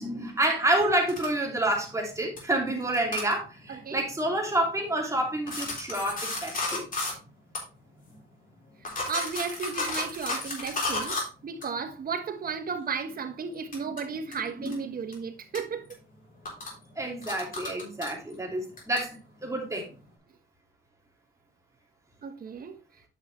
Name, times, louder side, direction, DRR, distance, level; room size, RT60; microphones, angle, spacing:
voice 1, 0.0-6.8 14.6-14.9 17.0-19.9, right 1 dB, 15° right, 2.7 m, -28 dB
sound 1, 0.9-12.6 12.9-15.1 15.5-20.1, left 2 dB, 45° left, 3.7 m, -36 dB
voice 2, 3.7-4.0 9.1-11.2 11.4-16.0 22.2-22.8, right 5 dB, 50° right, 1.3 m, -34 dB
9.4 x 5.7 x 3.2 m
cardioid pair, 90°, 20 cm